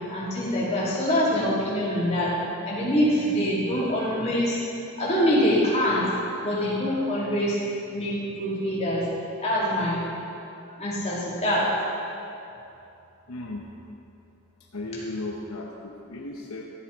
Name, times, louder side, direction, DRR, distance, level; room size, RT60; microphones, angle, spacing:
voice 1, 0.1-2.4 2.6-4.6 5.0-6.1 6.4-7.6 7.9-9.1 9.4-10.0 10.8-11.7, equal, 30° left, -7 dB, 2.8 m, -24 dB
voice 2, 13.3-13.6 14.7-16.6, left 2 dB, 70° left, -1 dB, 0.9 m, -35 dB
13.5 x 9.0 x 4.1 m, 2.8 s
head